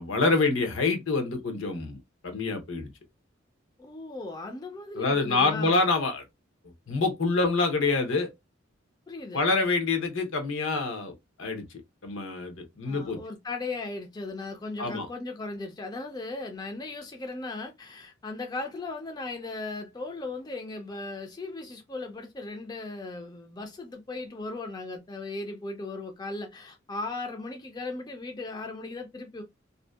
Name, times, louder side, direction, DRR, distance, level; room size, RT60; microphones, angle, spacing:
voice 1, 0.0-2.0 2.2-2.9 4.9-6.2 6.9-8.3 9.3-11.1 11.4-11.6 12.0-13.2 14.8-15.1, left 3 dB, 80° left, 0.7 m, -26 dB
voice 2, 3.8-5.8 9.1-9.4 12.8-29.4, left 3 dB, 20° left, 0.4 m, -37 dB
2.6 x 2.1 x 2.2 m
head